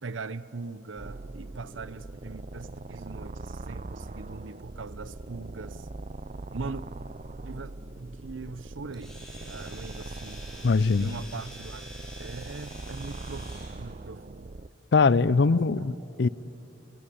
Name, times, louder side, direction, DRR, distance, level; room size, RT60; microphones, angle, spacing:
voice 1, 0.0-5.9 6.5-6.8 7.4-10.4 11.0-11.9 12.2-14.5 15.2-15.9, right 3 dB, 90° right, 0.8 m, -41 dB
sound 1, 1.0-14.7, right 2 dB, 40° right, 0.6 m, -41 dB
Domestic sounds home sounds, 8.9-13.8, equal, 5° left, 6.0 m, -47 dB
voice 2, 10.6-11.1 14.9-16.3, left 4 dB, 60° left, 0.5 m, -22 dB
27.0 x 20.0 x 8.6 m
head